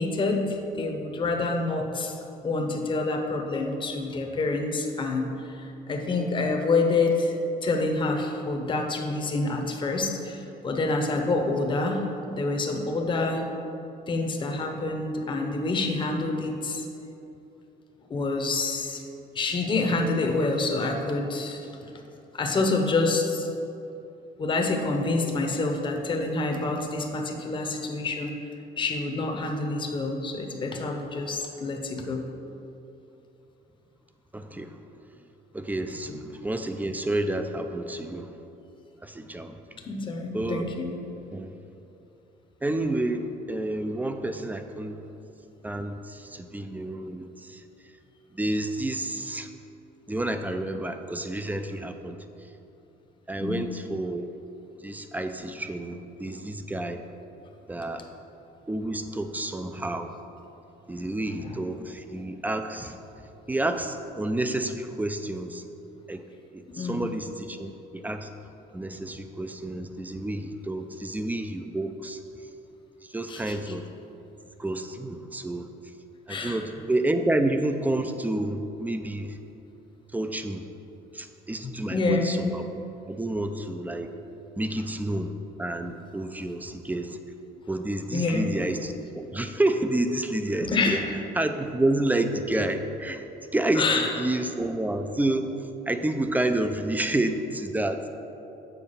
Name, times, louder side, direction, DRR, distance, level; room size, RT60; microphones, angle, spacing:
voice 1, 0.0-2.2 2.4-7.4 7.6-13.4 14.1-16.8 18.1-19.0 19.3-21.7 22.3-23.5 24.4-28.4 28.8-32.2 39.9-40.9 53.4-53.6 61.2-61.6 66.8-67.1 73.3-73.7 76.3-76.6 81.6-82.4 88.1-88.5 90.6-91.1 93.8-94.1, left 3 dB, 30° left, 2 dB, 0.8 m, -27 dB
voice 2, 34.3-34.8 35.5-38.3 39.0-39.8 40.3-40.7 41.3-41.5 42.6-45.0 45.6-47.6 48.3-49.5 50.1-52.2 53.3-54.3 54.8-57.0 57.7-58.0 58.7-60.2 60.9-63.0 63.5-65.6 66.1-66.2 66.5-68.3 68.7-72.2 73.0-73.9 74.6-75.7 76.3-79.4 80.1-80.7 81.1-84.1 84.6-85.3 85.6-87.2 87.7-91.1 91.3-93.3 93.5-95.5 95.9-98.1, right 1 dB, 10° right, 8 dB, 0.4 m, -29 dB
7.0 x 4.5 x 5.5 m, 2.9 s
cardioid pair, 110°, 17 cm